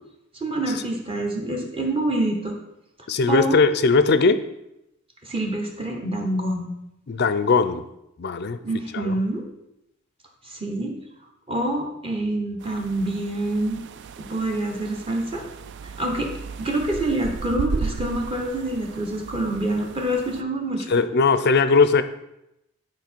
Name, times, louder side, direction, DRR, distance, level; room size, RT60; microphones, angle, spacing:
voice 1, 0.3-2.5 3.3-3.6 5.2-6.7 8.6-9.4 10.4-10.9 11.5-13.8 14.2-15.4 16.0-16.3 16.6-20.9, right 1 dB, 25° right, 1 dB, 1.0 m, -26 dB
voice 2, 3.1-4.4 7.1-7.8 8.2-8.6 8.9-9.1 20.9-22.0, left 4 dB, 45° left, 12 dB, 0.4 m, -19 dB
sound 1, 12.6-20.4, right 5 dB, 50° right, 0.3 m, -35 dB
9.5 x 4.6 x 4.5 m, 0.87 s
head